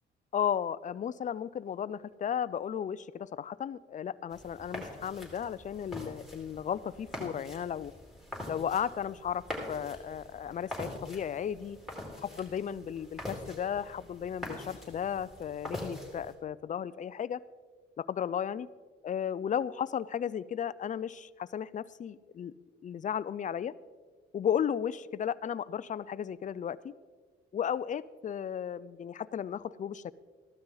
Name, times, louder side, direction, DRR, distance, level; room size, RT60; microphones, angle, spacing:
voice 1, 0.3-7.9 8.5-11.8 12.2-17.4 18.0-18.7 19.0-22.5 22.8-23.7 24.3-26.9 27.5-30.1, left 8 dB, 40° left, 17 dB, 0.5 m, -34 dB
sound 1, 4.3-16.3, left 1 dB, ahead, 4.0 m, -44 dB
15.0 x 12.5 x 4.0 m, 1.5 s
cardioid pair, 90°, 20 cm